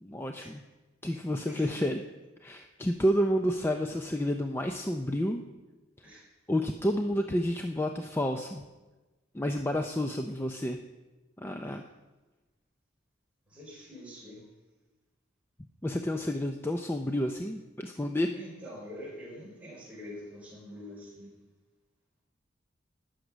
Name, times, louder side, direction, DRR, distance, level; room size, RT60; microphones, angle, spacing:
voice 1, 0.0-0.6 1.0-2.0 2.4-5.4 6.5-8.6 9.3-10.8 11.4-11.8 15.8-18.4, equal, 10° left, 5 dB, 0.5 m, -30 dB
voice 2, 13.5-14.4 18.3-21.3, equal, 5° right, -6 dB, 4.9 m, -45 dB
19.0 x 6.5 x 6.2 m, 1.2 s
head